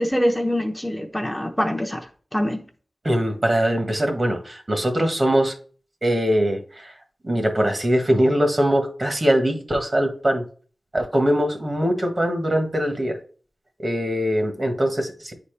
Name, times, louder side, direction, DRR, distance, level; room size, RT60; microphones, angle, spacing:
voice 1, 0.0-2.7, equal, 10° left, 0.9 m, -24 dB
voice 2, 3.0-5.5 6.0-6.9 7.2-10.4 10.9-13.2 13.8-15.3, equal, 40° right, 1.5 m, -22 dB
9.5 x 4.3 x 3.3 m
cardioid pair, 50°, 0 cm